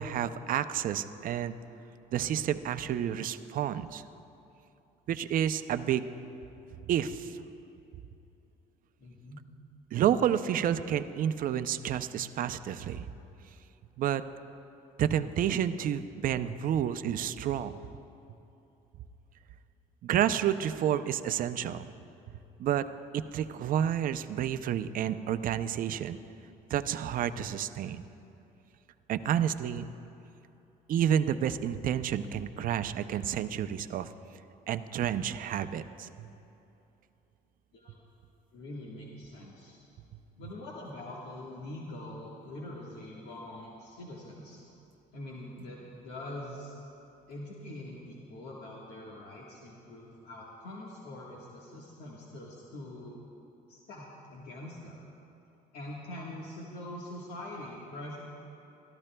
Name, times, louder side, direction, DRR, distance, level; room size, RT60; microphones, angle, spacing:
voice 1, 0.0-1.6 2.1-4.0 5.1-6.1 6.9-7.4 9.9-13.0 14.0-14.2 15.0-17.7 20.0-21.9 22.6-22.8 23.1-26.2 26.7-28.0 29.1-29.9 30.9-34.1 34.7-36.3, right 10 dB, 55° right, 11 dB, 0.5 m, -30 dB
voice 2, 9.0-9.4 37.7-37.9 38.5-39.8 40.4-44.6 45.1-46.8 47.3-53.2 53.7-55.0 55.7-58.2, left 1 dB, 75° left, -4 dB, 1.5 m, -44 dB
27.5 x 13.5 x 2.3 m, 2.8 s
cardioid pair, 110°, 17 cm